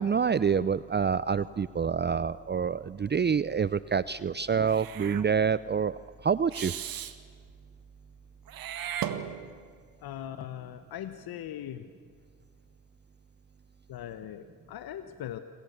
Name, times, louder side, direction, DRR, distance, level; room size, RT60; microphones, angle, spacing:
voice 1, 0.0-6.0 6.2-6.7, right 6 dB, 25° right, 17 dB, 0.7 m, -27 dB
Meow / Hiss, 4.6-5.3 6.5-7.2 8.5-9.7, right 9 dB, 60° right, 1.9 m, -36 dB
voice 2, 10.0-11.9 13.9-15.4, left 11 dB, 65° left, 10 dB, 1.4 m, -40 dB
27.5 x 25.5 x 6.9 m, 2.1 s
supercardioid pair, 60°, 39 cm